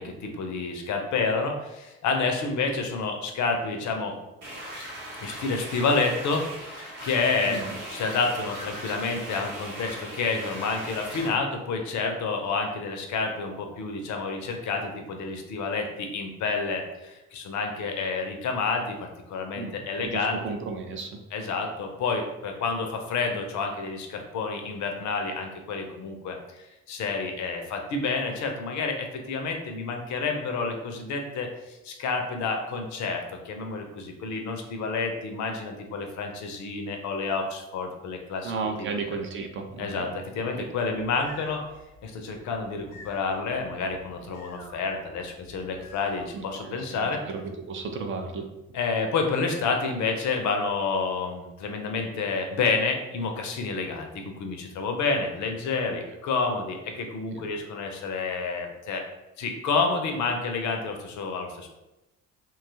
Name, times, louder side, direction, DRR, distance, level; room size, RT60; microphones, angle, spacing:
voice 1, 0.0-4.2 5.2-7.6 7.9-20.4 21.3-38.5 39.8-41.6 42.0-47.2 48.7-59.0 59.4-61.7, left 4 dB, 45° left, 4 dB, 0.5 m, -29 dB
sound 1, 4.4-11.3, right 1 dB, 80° right, 0.8 m, -39 dB
voice 2, 19.6-21.2 38.4-40.1 40.6-40.7 46.3-47.4 47.7-48.5 57.3-57.5, right 4 dB, 30° right, 4 dB, 0.4 m, -34 dB
sound 2, 41.0-46.6, left 2 dB, 90° left, 0.6 m, -50 dB
2.7 x 2.2 x 2.6 m, 0.97 s
figure-of-eight pair, 45°, 43 cm